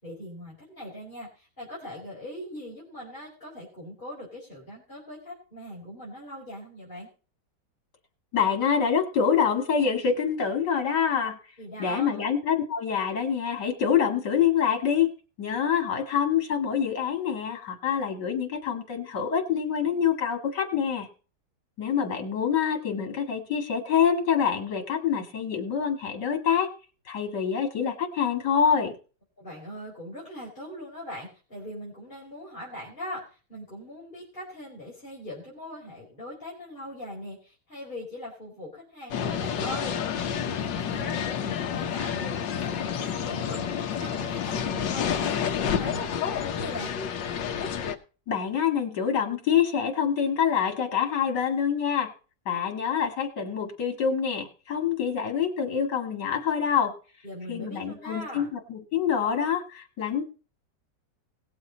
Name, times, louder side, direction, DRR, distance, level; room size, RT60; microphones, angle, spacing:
voice 1, 0.0-7.1 11.6-12.3 29.4-47.0 57.2-58.5, left 1 dB, 25° left, -7 dB, 4.6 m, -41 dB
voice 2, 8.3-11.4 11.8-15.1 15.4-21.1 21.8-26.7 27.1-28.9 48.3-52.1 52.5-56.9 57.5-60.2, left 7 dB, 65° left, 4 dB, 2.7 m, -26 dB
sound 1, 39.1-48.0, left 8 dB, 85° left, 1.7 m, -29 dB
19.0 x 7.5 x 4.0 m, 0.36 s
omnidirectional pair, 1.9 m